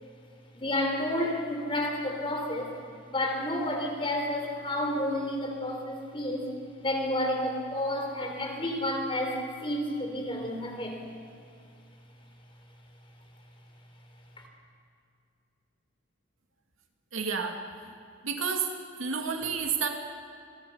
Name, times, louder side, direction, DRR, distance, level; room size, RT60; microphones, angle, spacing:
voice 1, 0.5-2.7 3.1-6.5 6.8-11.0, left 1 dB, 25° left, 2 dB, 3.8 m, -30 dB
voice 2, 17.1-17.6 18.2-18.7 19.0-19.9, right 6 dB, 75° right, 3 dB, 2.5 m, -30 dB
28.0 x 21.5 x 5.7 m, 2.5 s
head